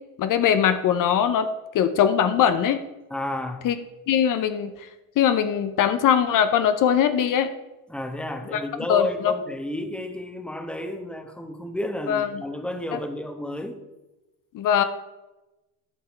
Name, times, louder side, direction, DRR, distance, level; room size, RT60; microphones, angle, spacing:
voice 1, 0.2-1.5 1.7-2.8 3.6-3.7 4.1-4.9 5.2-7.5 8.5-8.6 8.9-9.3 12.1-12.3 12.9-13.0 14.5-14.8, left 9 dB, 60° left, 10 dB, 0.8 m, -21 dB
voice 2, 3.1-3.7 7.9-13.8, left 1 dB, 5° left, 6 dB, 1.2 m, -31 dB
11.5 x 5.6 x 4.4 m, 1.0 s
supercardioid pair, 85°, 35 cm